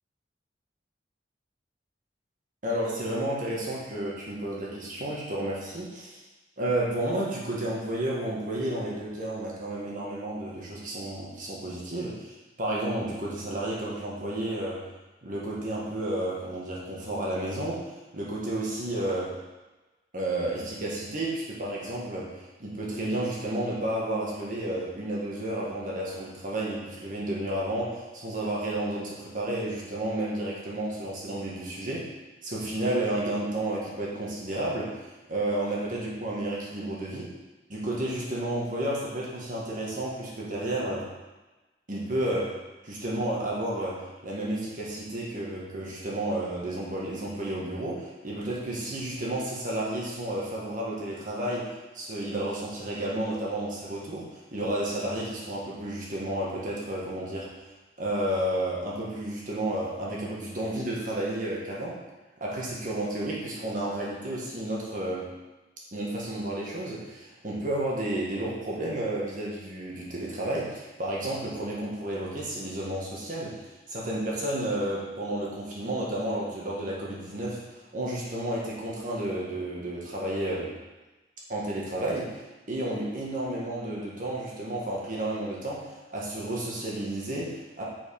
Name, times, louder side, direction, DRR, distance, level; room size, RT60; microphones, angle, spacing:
voice 1, 2.6-6.2 6.6-14.8 15.2-17.9 18.1-19.4 20.1-32.1 32.4-34.9 35.3-37.3 37.7-41.1 41.9-42.6 42.8-57.5 58.0-62.0 62.4-65.3 65.9-73.6 73.9-77.6 77.9-80.7 81.5-82.4 82.7-87.8, right 1 dB, 45° right, -5 dB, 1.6 m, -31 dB
6.1 x 4.9 x 5.2 m, 1.1 s
head